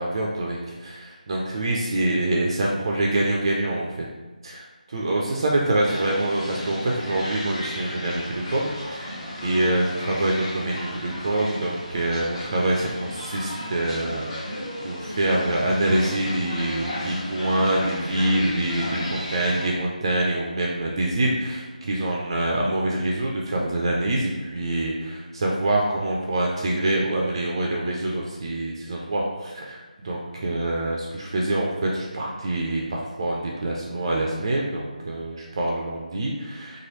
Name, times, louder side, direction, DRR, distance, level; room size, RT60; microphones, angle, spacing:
voice 1, 0.0-4.0 4.4-14.2 14.5-36.9, right 1 dB, 35° right, -2 dB, 0.3 m, -25 dB
sound 1, 5.9-19.6, left 1 dB, 35° left, 0.8 m, -34 dB
3.0 x 2.3 x 3.0 m, 1.2 s
figure-of-eight pair, 160°, 5 cm